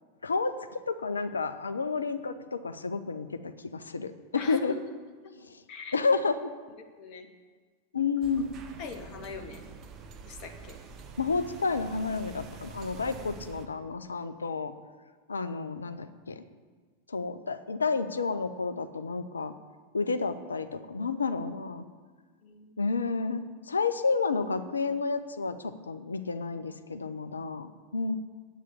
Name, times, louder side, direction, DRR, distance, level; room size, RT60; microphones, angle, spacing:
voice 1, 0.2-4.7 5.4-5.6 5.9-6.5 7.9-8.5 11.2-14.7 15.3-16.4 17.1-19.5 19.9-21.8 22.8-23.4 23.7-28.2, left 4 dB, 75° left, 11 dB, 0.6 m, -30 dB
voice 2, 4.4-4.7 5.2-5.3 5.7-6.0 7.0-7.3 8.8-9.6 10.2-10.8 22.4-22.9, left 6 dB, 40° left, 5 dB, 1.2 m, -41 dB
sound 1, 8.2-13.7, right 5 dB, 35° right, 1.1 m, -46 dB
8.2 x 7.5 x 8.5 m, 1.5 s
figure-of-eight pair, 90°, 0 cm